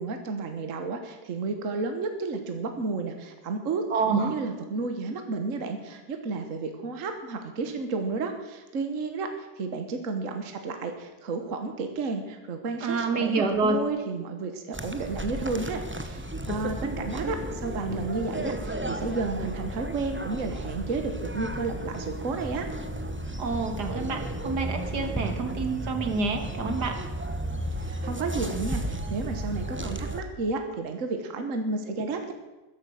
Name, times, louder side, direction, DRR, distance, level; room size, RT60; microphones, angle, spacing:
voice 1, 0.0-22.7 27.8-32.3, right 3 dB, 50° right, 6 dB, 1.6 m, -32 dB
voice 2, 3.9-4.4 12.8-13.8 23.4-27.0, right 4 dB, 65° right, 6 dB, 2.1 m, -27 dB
sound 1, 14.7-30.2, right 1 dB, 15° right, 0.5 m, -33 dB
14.0 x 11.5 x 6.4 m, 1.1 s
omnidirectional pair, 1.9 m